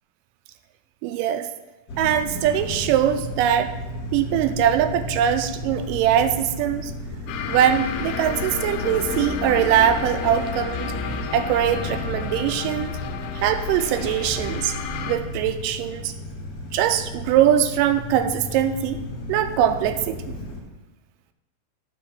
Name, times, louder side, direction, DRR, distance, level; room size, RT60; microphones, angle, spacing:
voice 1, 1.0-1.5 2.0-3.8 4.1-6.9 7.5-10.9 11.3-12.9 13.4-14.7 15.1-16.1 16.7-19.0 19.3-20.2, right 10 dB, 80° right, 9 dB, 2.1 m, -22 dB
sound 1, 1.9-20.6, left 1 dB, 50° left, 2.3 m, -34 dB
sound 2, 7.3-15.2, left 6 dB, 90° left, 2.6 m, -31 dB
9.2 x 4.4 x 7.0 m, 1.1 s
omnidirectional pair, 4.0 m